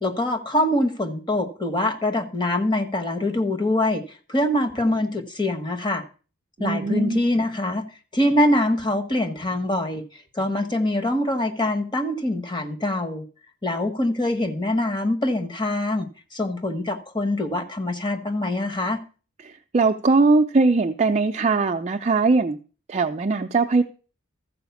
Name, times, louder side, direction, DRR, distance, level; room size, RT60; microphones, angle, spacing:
voice 1, 0.0-4.0 4.3-6.0 6.6-7.8 8.1-10.0 10.3-13.3 13.6-16.1 16.3-19.0, left 1 dB, 20° left, 1.2 m, -24 dB
voice 2, 6.6-7.2 19.4-22.6 22.9-23.8, right 3 dB, 30° right, 0.4 m, -20 dB
13.5 x 4.9 x 7.0 m
head